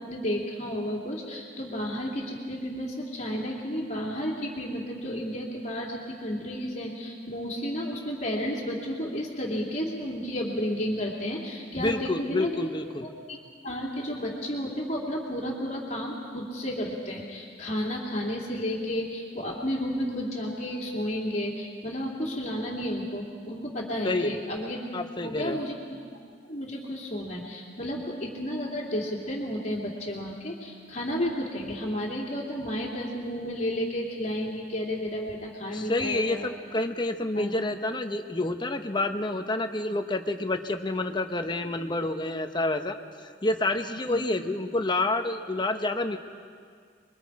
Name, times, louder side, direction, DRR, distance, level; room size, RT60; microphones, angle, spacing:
voice 1, 0.0-12.5 13.0-13.4 13.6-24.8 25.2-25.8 26.5-36.5 37.3-37.5 44.0-44.2, equal, 40° left, -2 dB, 3.0 m, -32 dB
voice 2, 11.8-13.1 24.0-24.3 24.9-25.6 35.7-43.0 43.4-46.2, left 2 dB, 25° left, 6 dB, 1.0 m, -28 dB
27.0 x 23.0 x 4.8 m, 2.1 s
head